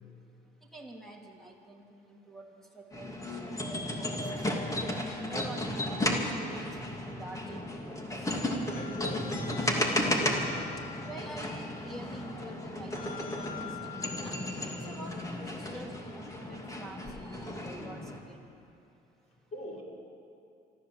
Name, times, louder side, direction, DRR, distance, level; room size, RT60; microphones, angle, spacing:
voice 1, 0.7-2.5 2.7-3.1 3.4-4.8 5.2-6.8 7.0-8.3 11.1-14.4 14.7-18.0 18.3-18.4, right 1 dB, ahead, 0 dB, 3.1 m, -47 dB
sound 1, 2.9-18.2, left 1 dB, 20° left, 2.6 m, -34 dB
voice 2, 8.7-10.1 19.5-19.8, left 1 dB, 40° left, -2 dB, 5.4 m, -40 dB
25.0 x 13.5 x 7.9 m, 2.6 s
cardioid pair, 110°, 17 cm